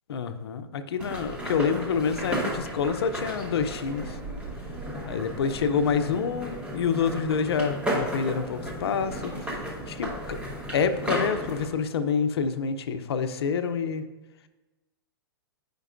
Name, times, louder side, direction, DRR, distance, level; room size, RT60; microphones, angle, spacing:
voice 1, 0.1-4.0 5.1-9.3 9.9-10.4 10.7-14.0, left 6 dB, 80° left, 10 dB, 0.6 m, -27 dB
sound 1, 1.0-11.7, equal, 10° right, 1.1 m, -34 dB
9.0 x 5.2 x 2.5 m, 1.1 s
hypercardioid pair, 125°, 13 cm